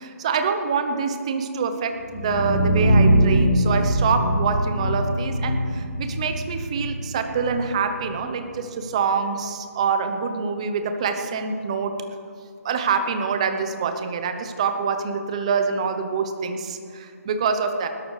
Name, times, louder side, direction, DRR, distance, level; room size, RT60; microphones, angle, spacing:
voice 1, 0.0-11.9 12.6-17.9, right 5 dB, 20° right, 7 dB, 0.9 m, -25 dB
sound 1, 2.0-8.0, right 1 dB, 10° left, 3.2 m, -22 dB
19.0 x 12.0 x 4.9 m, 2.4 s
hypercardioid pair, 175°, 9 cm